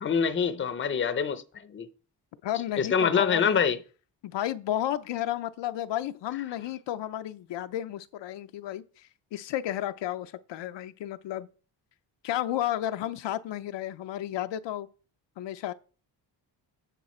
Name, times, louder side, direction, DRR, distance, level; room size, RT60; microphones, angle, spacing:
voice 1, 0.0-1.9 2.8-3.8, left 6 dB, 30° left, 0.6 m, -25 dB
voice 2, 2.4-3.6 4.2-11.5 12.2-14.9 15.4-15.7, left 12 dB, 75° left, 0.6 m, -32 dB
9.1 x 6.4 x 4.3 m
wide cardioid pair, 170°, 43 cm